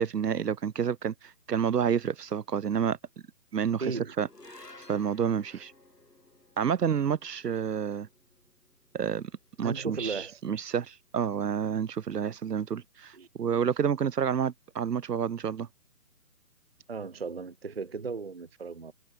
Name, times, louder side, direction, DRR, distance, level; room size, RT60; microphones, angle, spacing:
voice 1, 0.0-3.0 3.5-3.9 4.2-4.3 4.9-5.7 6.6-8.1 8.9-9.3 9.6-15.7, right 7 dB, 85° right, 0.7 m, -29 dB
voice 2, 3.8-4.1 5.5-5.6 9.6-10.4 13.2-13.3 16.9-18.9, right 4 dB, 45° right, 0.4 m, -36 dB
sound 1, 4.2-10.7, left 2 dB, 90° left, 4.8 m, -55 dB
figure-of-eight pair, 150°, 47 cm